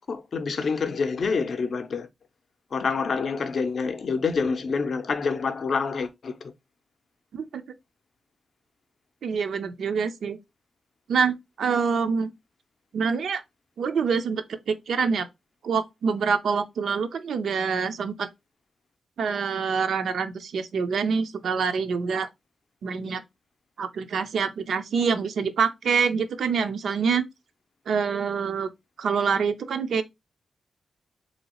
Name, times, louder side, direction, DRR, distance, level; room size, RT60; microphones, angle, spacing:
voice 1, 0.1-2.1 2.7-6.5, left 5 dB, 55° left, 0.5 m, -27 dB
voice 2, 9.2-10.4 11.1-12.3 12.9-13.4 13.8-15.3 15.6-18.3 19.2-22.3 22.8-23.2 23.8-27.3 27.9-28.7 29.0-30.0, right 5 dB, 75° right, 0.4 m, -26 dB
3.1 x 2.8 x 2.9 m
wide cardioid pair, 135°, 0 cm